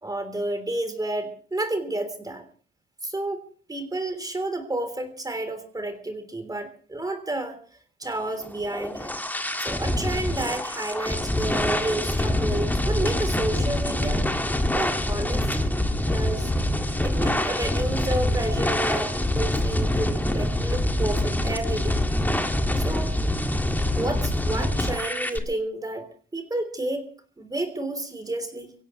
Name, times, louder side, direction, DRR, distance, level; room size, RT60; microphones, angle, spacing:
voice 1, 0.0-2.4 3.0-7.6 8.0-9.1 9.6-14.3 14.7-15.5 16.1-16.5 17.0-22.0 22.8-23.1 23.9-27.1 27.4-28.7, right 1 dB, 20° right, 8 dB, 3.4 m, -30 dB
sound 1, 8.4-25.4, left 1 dB, 10° left, 1.9 m, -25 dB
24.5 x 16.5 x 3.1 m, 0.42 s
cardioid pair, 90°, 20 cm